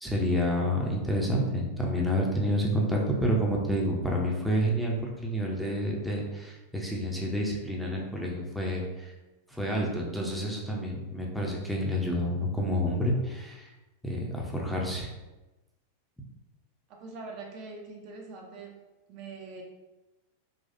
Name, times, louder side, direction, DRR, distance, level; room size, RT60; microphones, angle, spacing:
voice 1, 0.0-9.1 9.5-13.7 14.0-15.1, equal, ahead, -2 dB, 0.6 m, -29 dB
voice 2, 16.9-18.8 19.1-19.6, right 3 dB, 40° right, 0 dB, 0.5 m, -43 dB
4.1 x 2.3 x 2.6 m, 1.1 s
figure-of-eight pair, 90°, 0 cm